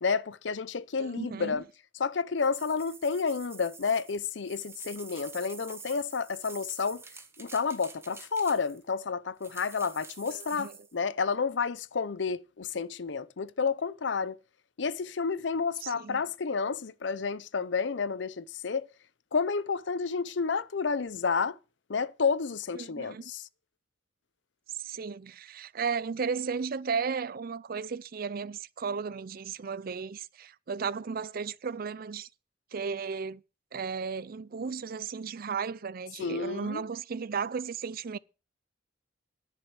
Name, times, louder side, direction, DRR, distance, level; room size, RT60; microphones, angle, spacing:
voice 1, 0.0-1.6 2.0-7.0 7.4-14.4 14.8-18.9 19.3-21.6 21.9-23.5 36.2-36.8, left 5 dB, 75° left, 0.6 m, -30 dB
voice 2, 1.0-1.6 10.3-10.7 15.8-16.2 22.7-23.3 24.8-32.3 32.7-33.4 33.7-38.2, right 5 dB, 55° right, 0.5 m, -35 dB
sound 1, 2.4-8.9 9.4-10.9, right 4 dB, 15° right, 1.2 m, -48 dB
10.5 x 6.3 x 8.7 m
head